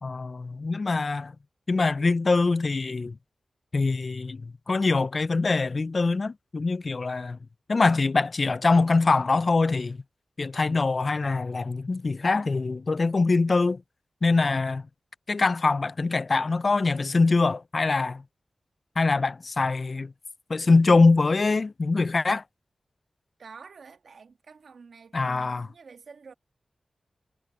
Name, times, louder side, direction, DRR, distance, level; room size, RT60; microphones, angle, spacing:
voice 1, 0.0-1.3 1.7-3.2 3.7-7.4 7.7-10.0 10.4-13.8 14.2-14.8 15.3-18.2 19.0-20.1 20.5-22.4 25.1-25.7, left 3 dB, 50° left, 0.4 m, -23 dB
voice 2, 23.4-26.3, right 5 dB, 80° right, 1.5 m, -48 dB
wide cardioid pair, 65°, 0 cm